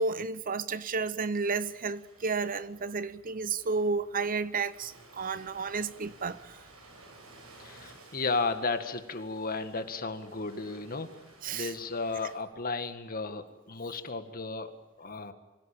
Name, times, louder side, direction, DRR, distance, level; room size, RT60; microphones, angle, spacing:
voice 1, 0.0-6.6 11.4-11.7, right 4 dB, 40° right, 0.8 m, -32 dB
Ocean, 1.4-12.4, right 2 dB, 80° right, 8.0 m, -56 dB
voice 2, 7.6-11.1 11.5-14.7 15.0-15.3, left 3 dB, 45° left, 1.9 m, -34 dB
25.0 x 16.5 x 9.0 m
head